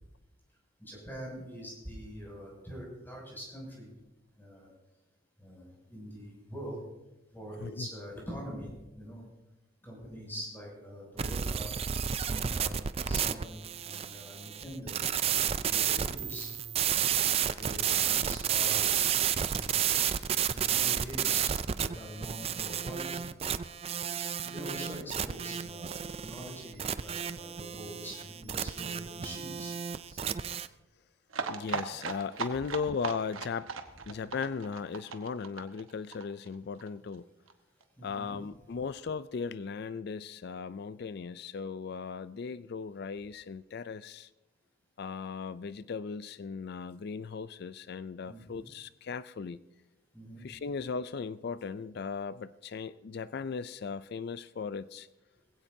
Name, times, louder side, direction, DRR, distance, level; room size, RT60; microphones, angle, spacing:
voice 1, 0.8-3.9 4.4-4.7 5.4-6.8 7.3-9.2 9.8-11.7 12.3-15.0 15.3-16.5 17.5-20.1 20.5-23.3 24.4-29.7 30.1-30.3 38.0-38.4 48.3-48.6 50.1-50.4, equal, 10° left, -3 dB, 6.6 m, -44 dB
sound 1, 11.2-30.7, right 9 dB, 30° right, 0.3 m, -31 dB
sound 2, 31.3-36.9 37.1-37.2 37.5-37.6 37.8-37.9, right 5 dB, 80° right, 1.1 m, -38 dB
voice 2, 31.5-33.8 34.1-37.3 38.0-44.3 45.0-49.6 50.4-55.1, left 5 dB, 50° left, 16 dB, 0.3 m, -37 dB
20.5 x 16.0 x 2.7 m, 1.0 s
head